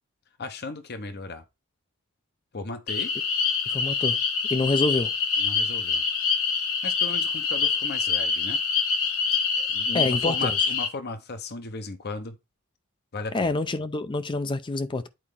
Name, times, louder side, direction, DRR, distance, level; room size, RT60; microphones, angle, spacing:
voice 1, 0.4-1.4 2.5-3.1 5.4-6.0 6.8-8.6 9.6-12.4 13.1-13.6, left 3 dB, 50° left, 0.8 m, -36 dB
sound 1, 2.9-10.9, left 6 dB, 80° left, 1.2 m, -25 dB
voice 2, 3.7-4.2 4.5-5.1 9.9-10.5 13.3-15.1, left 2 dB, 20° left, 0.4 m, -26 dB
8.7 x 4.4 x 3.6 m
head